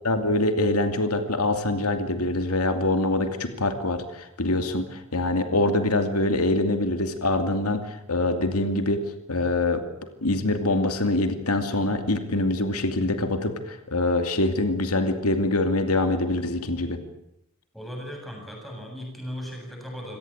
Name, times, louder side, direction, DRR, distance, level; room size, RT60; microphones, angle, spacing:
voice 1, 0.0-9.0 9.3-9.8 10.2-17.0, left 2 dB, 85° left, 7 dB, 2.6 m, -24 dB
voice 2, 17.7-20.2, equal, ahead, 0 dB, 7.8 m, -37 dB
27.5 x 17.5 x 8.9 m, 0.83 s
head